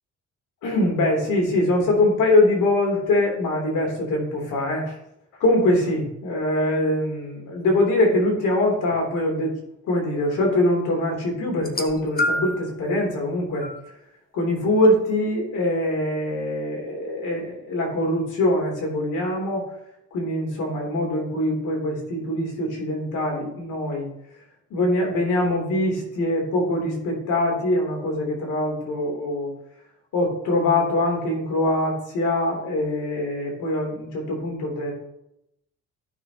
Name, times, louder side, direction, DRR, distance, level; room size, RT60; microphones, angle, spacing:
voice 1, 0.6-5.0 5.4-9.5 9.8-13.7 14.3-19.7 20.1-24.1 24.7-29.5 30.1-34.9, left 1 dB, 80° left, 0 dB, 3.3 m, -23 dB
sound 1, 11.6-12.7 13.6-13.8 14.8-14.9, left 1 dB, 30° left, 1.1 m, -27 dB
14.0 x 6.2 x 2.9 m, 0.80 s
cardioid pair, 90°, 30 cm